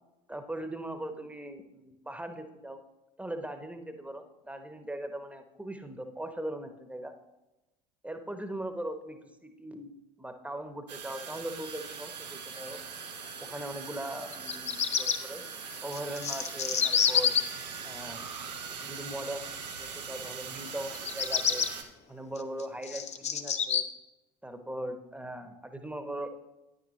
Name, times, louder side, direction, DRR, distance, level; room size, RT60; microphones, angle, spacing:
voice 1, 0.3-2.8 3.2-7.1 8.0-9.9 10.2-12.8 13.4-15.4 15.8-17.3 17.8-18.2 18.8-21.7 22.1-23.8 24.4-26.3, right 1 dB, 5° right, 7 dB, 1.0 m, -39 dB
sound 1, 10.9-21.8, right 6 dB, 80° right, 1.0 m, -41 dB
Bird vocalization bird call bird song, 14.3-15.2 15.9-17.4 20.9-21.7 22.4-23.8, left 7 dB, 30° left, 0.8 m, -27 dB
9.8 x 9.3 x 3.2 m, 0.99 s
figure-of-eight pair, 65°, 21 cm